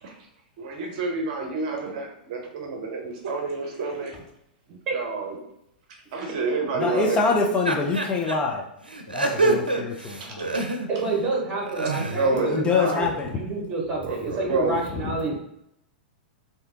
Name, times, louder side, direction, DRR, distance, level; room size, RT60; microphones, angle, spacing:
voice 1, 0.6-4.2 4.7-5.4 6.1-7.2 10.2-10.3 12.0-13.0 14.0-14.8, right 3 dB, 50° right, 1 dB, 0.8 m, -28 dB
voice 2, 6.7-8.7 9.1-10.6 12.3-13.4 15.0-15.4, left 4 dB, 20° left, 1 dB, 0.5 m, -25 dB
sound 1, 7.7-8.4 8.9-11.1 11.5-12.3, right 2 dB, 85° right, 0.5 m, -26 dB
voice 3, 10.9-15.4, right 3 dB, 25° right, -2 dB, 1.4 m, -29 dB
3.3 x 2.8 x 3.5 m, 0.79 s
figure-of-eight pair, 100°, 5 cm